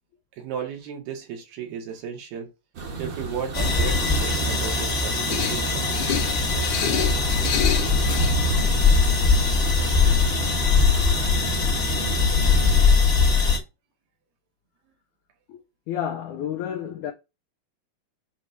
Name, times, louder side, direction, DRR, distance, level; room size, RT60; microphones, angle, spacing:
voice 1, 0.4-2.5 3.0-6.0, right 7 dB, 80° right, 3.6 m, -34 dB
sound 1, 2.7-12.9, right 2 dB, 55° right, 1.4 m, -31 dB
sound 2, 3.5-13.6, left 4 dB, 40° left, 0.9 m, -21 dB
sound 3, 5.2-8.3, left 8 dB, 60° left, 2.2 m, -29 dB
voice 2, 15.9-17.1, left 9 dB, 85° left, 1.7 m, -30 dB
7.4 x 3.3 x 6.0 m
omnidirectional pair, 4.4 m